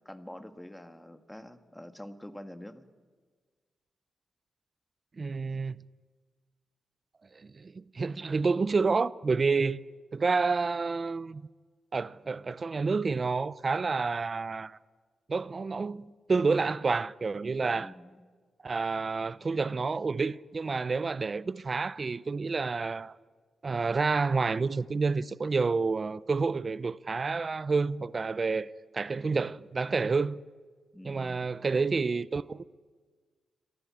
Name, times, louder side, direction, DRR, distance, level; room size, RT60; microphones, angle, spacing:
voice 1, 0.0-2.9 17.7-18.2 30.9-31.5, left 1 dB, 10° left, 1.6 m, -46 dB
voice 2, 5.2-5.8 7.6-9.8 10.1-11.4 11.9-14.8 15.3-17.9 18.6-23.2 23.6-28.7 28.9-30.4 31.0-32.6, right 4 dB, 45° right, 0.5 m, -29 dB
23.0 x 14.5 x 8.7 m
cardioid pair, 65°, 0 cm